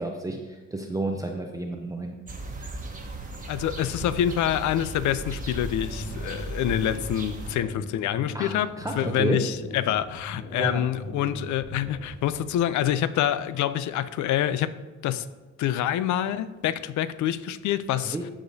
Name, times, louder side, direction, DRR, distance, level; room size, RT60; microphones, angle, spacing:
voice 1, 0.0-2.1 8.3-9.4 10.5-10.8 17.9-18.3, right 2 dB, 10° right, 0.6 m, -31 dB
sound 1, 2.3-7.6, right 2 dB, 25° right, 1.1 m, -36 dB
voice 2, 3.5-14.8 15.0-15.3 15.6-18.2, left 11 dB, 70° left, 0.5 m, -26 dB
sound 2, 5.6-13.8, left 1 dB, 85° left, 1.4 m, -41 dB
13.0 x 4.9 x 2.7 m
cardioid pair, 90°, 30 cm